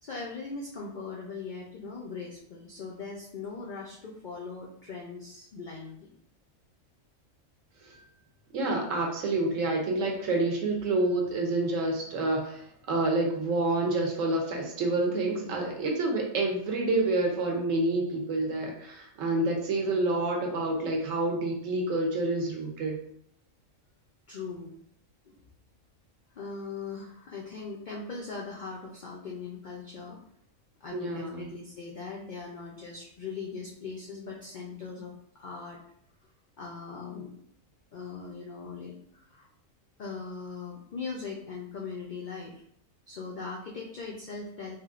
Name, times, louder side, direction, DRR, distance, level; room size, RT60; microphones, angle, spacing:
voice 1, 0.0-6.1 15.4-15.8 19.4-19.6 19.9-20.0 24.3-24.7 25.3-25.4 26.3-30.2 30.8-35.8 36.6-37.3 37.9-39.5 40.0-42.6 43.1-44.8, left 4 dB, 90° left, -2 dB, 0.4 m, -40 dB
voice 2, 8.5-23.0 30.9-31.5, right 2 dB, 75° right, 1 dB, 1.1 m, -28 dB
3.4 x 2.5 x 2.4 m, 0.68 s
omnidirectional pair, 1.4 m